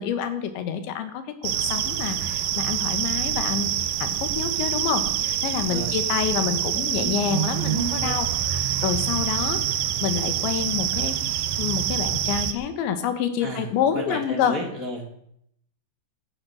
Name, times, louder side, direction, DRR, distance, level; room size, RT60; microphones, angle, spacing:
voice 1, 0.0-9.6 10.0-14.6, left 8 dB, 85° left, 9 dB, 3.8 m, -28 dB
sound 1, 1.4-12.5, right 10 dB, 70° right, 2.6 m, -26 dB
sound 2, 4.1-8.2, right 14 dB, 90° right, 3.0 m, -33 dB
voice 2, 5.5-5.9 13.4-13.7 13.9-15.1, left 1 dB, 65° left, 0 dB, 0.8 m, -33 dB
12.5 x 11.0 x 7.7 m, 0.72 s
omnidirectional pair, 5.1 m